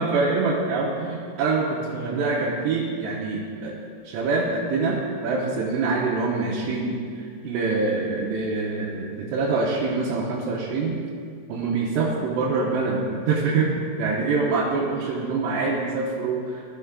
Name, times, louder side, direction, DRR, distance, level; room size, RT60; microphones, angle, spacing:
voice 1, 0.0-3.7 4.0-11.0 11.5-16.6, right 3 dB, 90° right, -6 dB, 3.1 m, -25 dB
14.5 x 5.5 x 3.6 m, 2.2 s
omnidirectional pair, 4.8 m